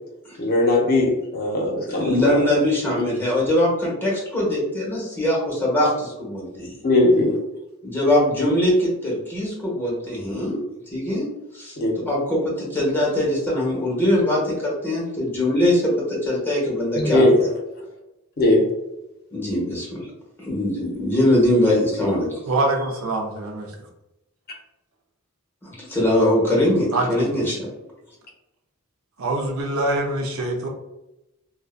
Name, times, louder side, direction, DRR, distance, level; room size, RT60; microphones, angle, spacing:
voice 1, 0.4-2.3 6.8-7.3 11.8-11.9 17.0-17.4 18.4-18.6, left 2 dB, 45° left, 0 dB, 0.5 m, -19 dB
voice 2, 1.9-6.8 7.8-10.6 10.9-11.3 11.5-11.8 12.0-17.5 19.3-20.0 20.4-22.4 25.6-27.7, left 1 dB, 10° left, -4 dB, 0.8 m, -22 dB
voice 3, 22.5-23.7 26.9-27.3 29.2-30.7, right 2 dB, 75° right, 1 dB, 0.5 m, -24 dB
2.6 x 2.0 x 2.4 m, 0.93 s
head